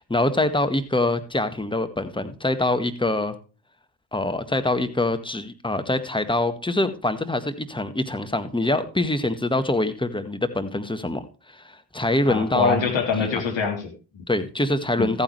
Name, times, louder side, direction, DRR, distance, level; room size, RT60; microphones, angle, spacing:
voice 1, 0.1-3.3 4.1-12.8 13.2-13.4 14.3-15.2, left 2 dB, 10° left, 9 dB, 1.7 m, -24 dB
voice 2, 12.2-14.2 15.0-15.1, left 5 dB, 60° left, 3 dB, 3.3 m, -25 dB
14.0 x 9.0 x 3.2 m, 0.34 s
hypercardioid pair, 45°, 50 cm